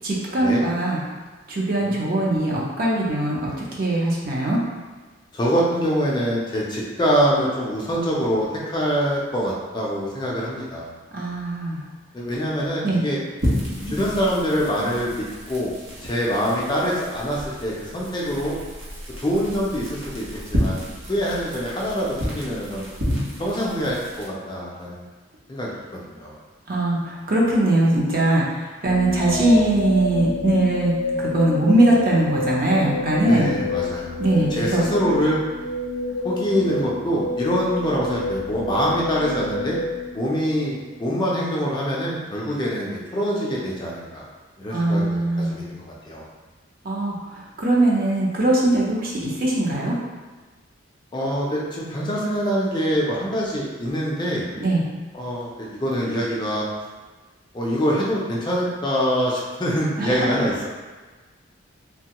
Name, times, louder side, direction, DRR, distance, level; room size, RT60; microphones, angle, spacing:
voice 1, 0.0-1.0 1.5-3.5 3.8-4.6 11.1-11.8 12.8-13.0 26.7-33.5 34.2-34.8 44.7-45.6 46.8-50.0 54.6-54.8 60.0-60.3, right 1 dB, 45° right, -4 dB, 0.5 m, -21 dB
voice 2, 1.8-2.1 5.3-10.9 12.1-13.2 13.9-15.7 16.0-18.6 19.2-20.3 20.5-22.9 23.4-25.0 25.5-26.4 33.2-34.2 34.5-35.4 36.2-39.8 40.1-44.2 44.6-46.3 51.1-54.5 55.1-56.7 57.5-60.7, equal, 20° left, -4 dB, 0.4 m, -25 dB
sound 1, 13.4-24.3, equal, 90° right, 0.9 m, -31 dB
sound 2, 28.8-40.9, left 3 dB, 85° left, 0.5 m, -28 dB
3.1 x 2.2 x 2.8 m, 1.3 s
head